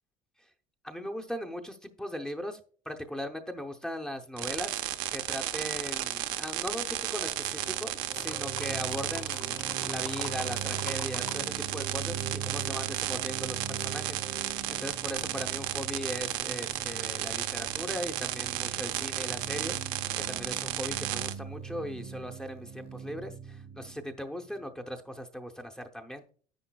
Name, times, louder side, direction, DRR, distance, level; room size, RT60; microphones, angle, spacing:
voice 1, 0.8-2.6 2.9-4.8 5.1-19.8 20.3-26.2, equal, 5° left, 4 dB, 0.7 m, -39 dB
sound 1, 4.4-21.3, right 14 dB, 75° right, 0.7 m, -34 dB
sound 2, 7.3-24.9, right 6 dB, 40° right, 0.8 m, -42 dB
sound 3, 8.1-11.4 11.7-13.1 13.6-13.7, left 6 dB, 30° left, 0.9 m, -45 dB
10.0 x 9.0 x 2.3 m, 0.42 s
cardioid pair, 150°, 15 cm